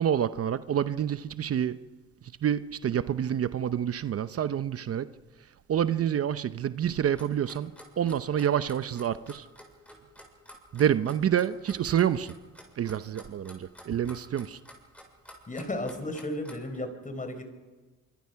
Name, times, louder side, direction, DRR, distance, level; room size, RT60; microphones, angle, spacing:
voice 1, 0.0-1.8 2.4-5.1 5.7-9.5 10.7-12.4 12.8-14.6, right 9 dB, 50° right, 0.8 m, -28 dB
Clock, 7.2-16.8, equal, 5° left, 7.2 m, -49 dB
voice 2, 15.5-17.4, left 1 dB, 25° left, 4.5 m, -34 dB
25.0 x 25.0 x 5.8 m
cardioid pair, 90°, 30 cm